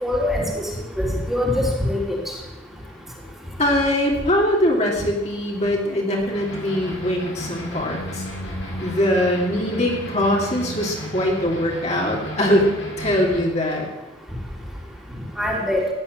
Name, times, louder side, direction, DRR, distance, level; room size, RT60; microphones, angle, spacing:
voice 1, 0.0-0.4 1.0-2.2 15.4-15.8, left 1 dB, ahead, -3 dB, 3.2 m, -22 dB
voice 2, 3.6-8.2 8.8-12.7 13.0-13.9, left 1 dB, 35° left, -2 dB, 3.2 m, -22 dB
sound 1, 6.3-13.4, equal, 80° left, 5.2 m, -34 dB
15.0 x 10.0 x 9.4 m, 1.1 s
head